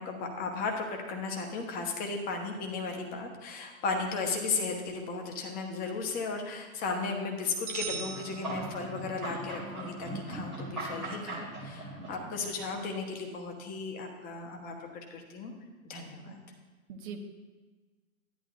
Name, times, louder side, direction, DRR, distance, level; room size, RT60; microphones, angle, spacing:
voice 1, 0.0-15.5 15.8-16.4, left 4 dB, 20° left, 3 dB, 1.2 m, -35 dB
sound 1, 7.7-9.2, right 6 dB, 50° right, 1.4 m, -40 dB
sound 2, 7.9-12.5, right 1 dB, ahead, 0.4 m, -39 dB
voice 2, 12.0-12.3 16.3-16.4 16.9-17.2, right 6 dB, 35° right, 2 dB, 1.0 m, -43 dB
12.0 x 9.9 x 2.6 m, 1.3 s
figure-of-eight pair, 115°, 43 cm